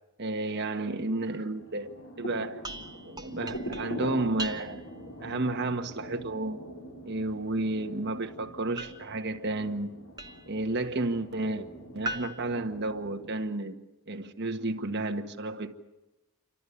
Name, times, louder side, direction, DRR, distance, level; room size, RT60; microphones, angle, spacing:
voice 1, 0.2-1.9 2.2-2.6 3.0-4.8 5.2-6.6 7.0-9.9 10.5-11.7 11.9-13.8 14.1-15.9, right 2 dB, 50° right, 1.6 m, -32 dB
sound 1, 1.2-13.3, equal, 65° left, 3.7 m, -43 dB
sound 2, 2.6-5.0 8.8-10.6 12.0-13.5, right 1 dB, 20° right, 1.0 m, -41 dB
29.0 x 13.0 x 10.0 m
head